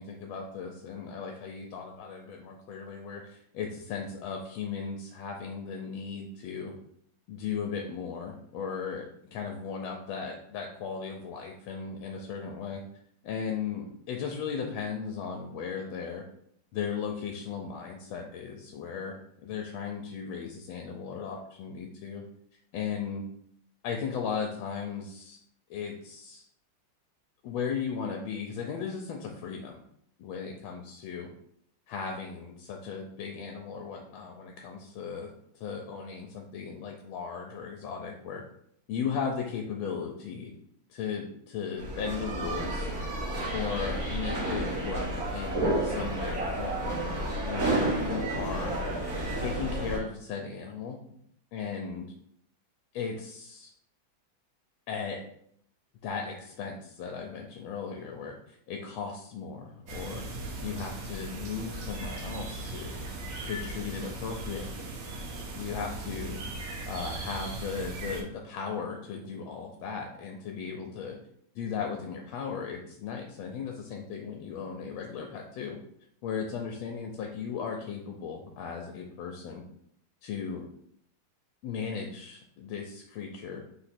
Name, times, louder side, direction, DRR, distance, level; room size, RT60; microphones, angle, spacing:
voice 1, 0.0-6.7 7.3-9.1 9.3-12.8 13.2-16.2 16.7-22.2 22.7-23.2 23.8-25.4 25.7-26.4 27.4-29.8 30.2-31.3 31.9-38.4 38.9-40.5 40.9-42.9 43.5-46.9 47.4-48.8 49.4-51.0 51.5-52.1 52.9-53.7 54.9-55.2 56.0-60.2 60.6-62.9 63.4-64.9 65.5-66.4 66.9-71.1 71.5-75.8 76.2-79.6 80.2-80.6 81.6-83.6, left 6 dB, 85° left, 2 dB, 1.4 m, -36 dB
sound 1, 41.8-50.0, right 1 dB, 50° right, 1.6 m, -31 dB
sound 2, 59.9-68.2, right 2 dB, 65° right, 1.5 m, -38 dB
3.9 x 2.9 x 4.2 m, 0.69 s
omnidirectional pair, 2.2 m